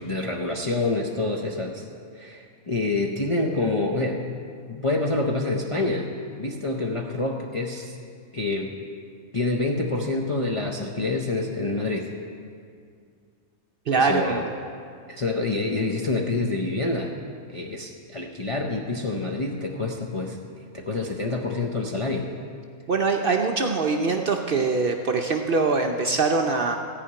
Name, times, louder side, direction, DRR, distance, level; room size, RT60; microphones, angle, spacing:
voice 1, 0.0-1.9 2.1-4.3 4.7-6.1 6.4-7.9 8.3-8.7 9.3-12.1 13.9-14.5 15.1-17.1 17.5-20.4 20.7-22.3, left 2 dB, 35° left, 0 dB, 0.5 m, -27 dB
voice 2, 13.9-14.5 22.9-26.8, right 4 dB, 55° right, 3 dB, 0.7 m, -23 dB
14.5 x 5.1 x 8.6 m, 2.3 s
omnidirectional pair, 1.4 m